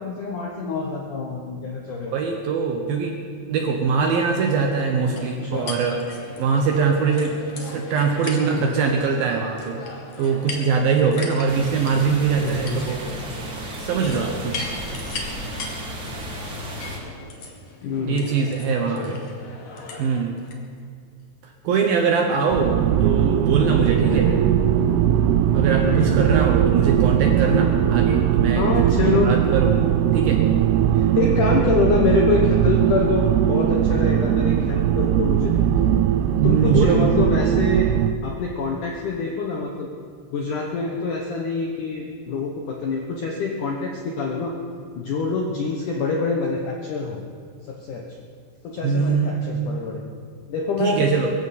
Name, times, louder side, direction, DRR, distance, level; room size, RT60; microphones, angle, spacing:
voice 1, 0.0-2.2 5.1-5.7 8.5-8.7 12.4-12.9 17.8-18.3 19.0-19.1 24.1-24.8 25.8-26.1 28.6-29.3 30.9-35.9 36.4-37.9 38.2-39.9 40.3-44.5 45.0-47.2 47.6-48.0 48.6-50.0 50.5-51.1, left 4 dB, 75° left, 0 dB, 1.9 m, -26 dB
voice 2, 2.1-3.2 3.5-6.0 6.4-9.8 10.2-13.0 13.8-14.6 18.1-19.2 20.0-20.4 21.4-24.3 25.5-28.7 29.1-29.7 30.1-30.4 36.4-37.2 48.8-49.8 50.8-51.3, right 5 dB, 70° right, 2 dB, 2.3 m, -22 dB
sound 1, 5.2-20.6, left 3 dB, 60° left, 1.9 m, -38 dB
sound 2, 11.5-17.0, right 1 dB, 40° right, 1.8 m, -34 dB
sound 3, 22.5-38.2, right 10 dB, 90° right, 2.3 m, -19 dB
22.5 x 14.5 x 4.3 m, 2.1 s
omnidirectional pair, 5.3 m